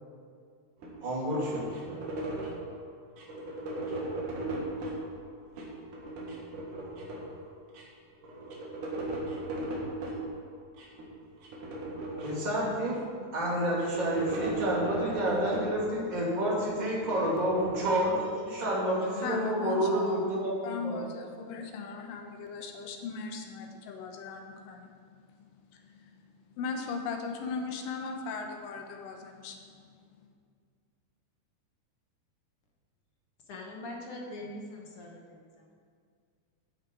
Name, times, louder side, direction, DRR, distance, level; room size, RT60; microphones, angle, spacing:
sound 1, 0.8-2.7 3.2-5.0 5.5-7.4 7.7-7.8 8.1-10.2 10.8-11.1 11.4-13.0 13.5-15.9 16.3-18.6, right 1 dB, 70° right, 3.2 m, -37 dB
voice 1, 1.0-1.7 12.2-13.0 13.3-21.1, right 1 dB, 15° right, -5 dB, 2.1 m, -29 dB
voice 2, 19.2-24.9 25.7-25.8 26.6-29.6, left 4 dB, 85° left, 3 dB, 2.7 m, -38 dB
voice 3, 33.5-35.8, left 1 dB, 55° left, 0 dB, 1.7 m, -43 dB
14.0 x 8.4 x 4.6 m, 2.1 s
omnidirectional pair, 3.8 m